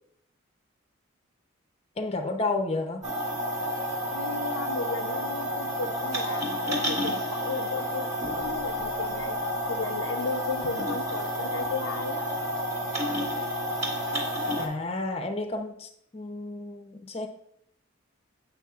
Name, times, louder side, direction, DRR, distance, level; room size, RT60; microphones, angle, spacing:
voice 1, 2.0-3.1 14.6-17.3, left 2 dB, 30° left, 5 dB, 0.6 m, -31 dB
sound 1, 3.0-14.7, equal, 35° right, 1.6 m, -30 dB
voice 2, 4.1-8.1 8.3-9.4 9.7-12.2, left 4 dB, 75° left, 11 dB, 0.5 m, -35 dB
8.9 x 5.4 x 2.4 m, 0.70 s
head